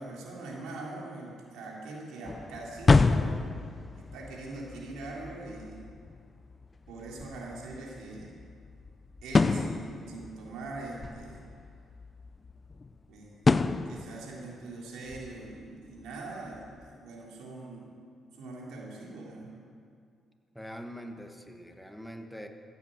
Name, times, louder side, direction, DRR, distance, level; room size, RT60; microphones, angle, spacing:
voice 1, 0.0-3.4 3.9-5.8 6.9-8.4 9.2-11.4 13.1-17.9 18.3-19.5, right 2 dB, 85° right, -3 dB, 3.6 m, -42 dB
sound 1, 2.2-13.0 13.4-14.6 15.1-15.6 16.0-16.1 16.5-16.9, left 4 dB, 30° left, 0.5 m, -29 dB
voice 2, 20.5-22.5, equal, ahead, 4 dB, 1.4 m, -43 dB
14.5 x 8.6 x 7.9 m, 2.3 s
cardioid pair, 90°, 0 cm